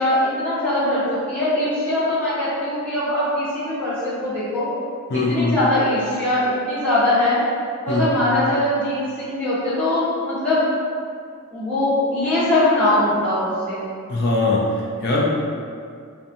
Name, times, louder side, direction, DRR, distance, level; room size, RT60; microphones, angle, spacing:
voice 1, 0.0-4.7 5.1-7.4 7.8-10.6 11.5-13.9, left 1 dB, 5° left, -14 dB, 0.9 m, -21 dB
voice 2, 5.1-5.6 7.9-8.3 14.1-15.2, left 2 dB, 50° left, -4 dB, 0.4 m, -21 dB
2.7 x 2.3 x 2.5 m, 2.2 s
head